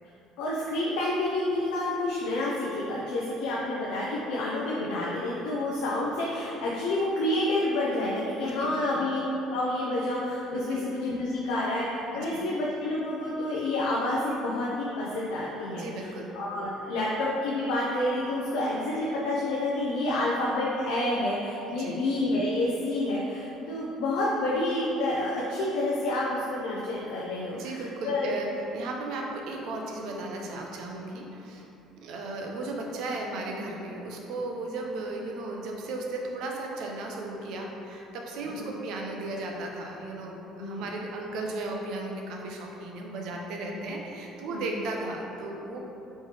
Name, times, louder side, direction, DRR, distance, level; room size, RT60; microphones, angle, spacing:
voice 1, 0.4-9.2 9.5-15.8 16.3-28.3 38.5-38.7 40.6-40.8 43.6-43.7 44.5-44.8, left 1 dB, 90° left, -5 dB, 0.5 m, -29 dB
voice 2, 8.4-9.0 10.5-10.8 12.1-12.4 15.7-16.3 21.7-22.0 27.5-31.7 32.0-45.8, right 2 dB, 70° right, 0 dB, 0.6 m, -35 dB
4.3 x 3.1 x 3.3 m, 3.0 s
cardioid pair, 135°, 0 cm